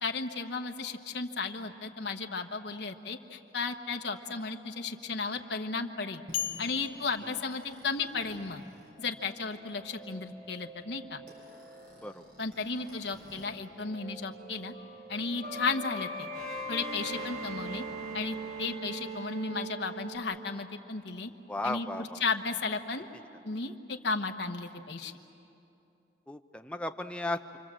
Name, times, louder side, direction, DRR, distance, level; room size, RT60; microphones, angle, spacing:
voice 1, 0.0-6.2 6.6-8.6 9.0-11.2 12.4-14.7 15.1-16.3 16.7-17.8 18.1-21.3 21.6-23.1 23.4-25.1, left 4 dB, 70° left, 4 dB, 1.2 m, -34 dB
sound 1, 6.3-8.2, left 10 dB, 55° left, 0.9 m, -38 dB
sound 2, 6.3-13.5 13.7-20.2, right 1 dB, 55° right, 4.6 m, -42 dB
voice 2, 21.5-22.2 26.3-27.4, left 2 dB, 5° left, 6 dB, 0.8 m, -35 dB
28.5 x 24.5 x 7.5 m, 2.8 s
head